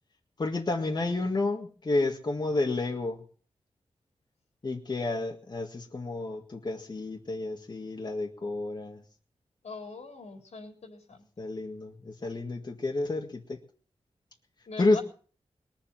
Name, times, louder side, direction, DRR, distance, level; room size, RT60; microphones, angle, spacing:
voice 1, 0.4-3.2 4.6-9.0 11.4-13.6 14.8-15.0, left 2 dB, 40° left, 2 dB, 1.8 m, -30 dB
voice 2, 9.6-11.2 14.7-15.0, left 4 dB, 85° left, 3 dB, 4.1 m, -42 dB
21.5 x 7.5 x 7.6 m, 0.43 s
wide cardioid pair, 115°, 11 cm